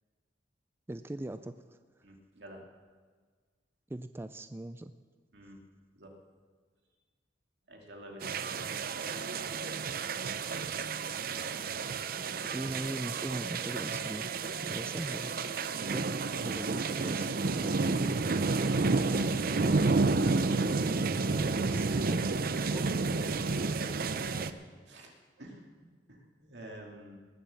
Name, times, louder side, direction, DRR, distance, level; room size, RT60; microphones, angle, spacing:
voice 1, 0.9-1.5 3.9-4.9 12.5-14.3 14.6-15.3 15.9-19.2 21.6-22.8, right 1 dB, 15° right, 11 dB, 0.3 m, -40 dB
voice 2, 2.0-2.7 5.3-5.6 5.9-6.1 7.7-8.3 15.7-16.0 23.0-23.6 24.0-24.5 24.9-25.1 25.4-27.2, right 1 dB, 75° right, 1 dB, 2.4 m, -49 dB
sound 1, 8.2-24.5, right 3 dB, 55° right, 0.6 m, -31 dB
20.0 x 7.4 x 7.0 m, 1.5 s
head